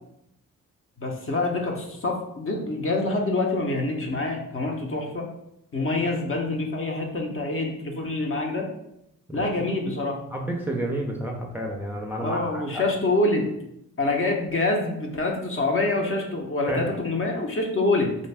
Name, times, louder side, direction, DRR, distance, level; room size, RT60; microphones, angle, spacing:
voice 1, 1.0-5.3 5.7-8.7 9.3-10.2 12.2-13.5 14.0-18.1, left 2 dB, 35° left, 0 dB, 0.7 m, -26 dB
voice 2, 10.3-12.8 16.7-16.8, right 1 dB, 5° right, -1 dB, 0.5 m, -30 dB
2.6 x 2.2 x 3.3 m, 0.80 s
supercardioid pair, 50°, 35 cm